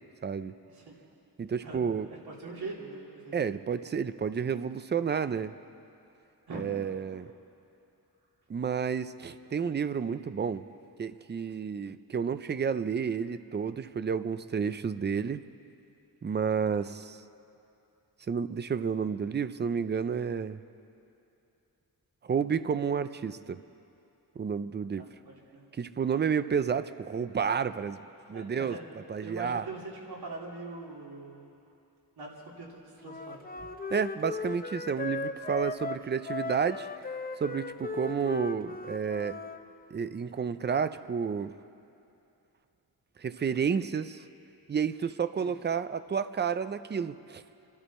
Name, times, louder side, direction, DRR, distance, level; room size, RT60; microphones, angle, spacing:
voice 1, 0.2-0.5 1.4-2.1 3.3-5.5 6.5-7.3 8.5-10.6 11.0-15.4 16.2-17.2 18.3-20.6 22.2-23.6 24.4-25.1 25.8-28.0 28.3-28.8 29.1-29.6 33.9-36.9 37.4-39.4 39.9-41.5 43.2-44.2 44.7-47.4, right 6 dB, 30° right, 12 dB, 0.4 m, -30 dB
voice 2, 2.1-3.5 6.5-6.7 24.9-25.6 28.3-28.8 29.2-31.6 32.2-33.5 45.4-45.5, right 3 dB, 80° right, -3 dB, 3.0 m, -43 dB
Wind instrument woodwind instrument, 33.0-39.6, left 4 dB, 25° left, 0.6 m, -37 dB
27.5 x 12.0 x 4.2 m, 2.7 s
wide cardioid pair, 155°, 38 cm